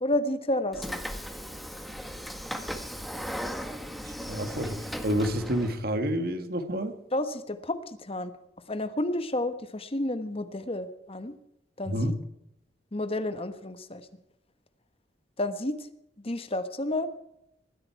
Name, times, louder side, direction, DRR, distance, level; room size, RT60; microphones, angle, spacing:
voice 1, 0.0-1.0 7.1-8.3 8.7-11.3 11.8-12.1 12.9-14.0 15.4-15.9 16.2-17.1, left 1 dB, 35° left, 10 dB, 1.2 m, -31 dB
Train / Sliding door, 0.7-5.8, equal, ahead, 1.4 m, -37 dB
voice 2, 4.0-4.8 5.0-6.9 11.9-12.1, equal, 60° right, 8 dB, 2.0 m, -29 dB
21.0 x 14.5 x 4.6 m, 0.82 s
head